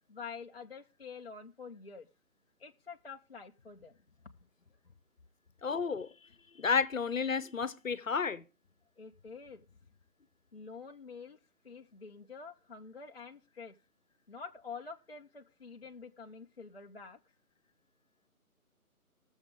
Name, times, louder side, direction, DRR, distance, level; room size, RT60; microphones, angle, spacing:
voice 1, 0.1-2.1 2.6-3.9 4.7-4.9 9.0-9.6 10.5-11.4 11.6-13.8 14.3-17.2, left 5 dB, 45° left, 0.6 m, -47 dB
voice 2, 5.6-6.1 6.5-8.4, left 5 dB, 60° left, 1.0 m, -31 dB
15.0 x 7.2 x 5.1 m
figure-of-eight pair, 160°, 44 cm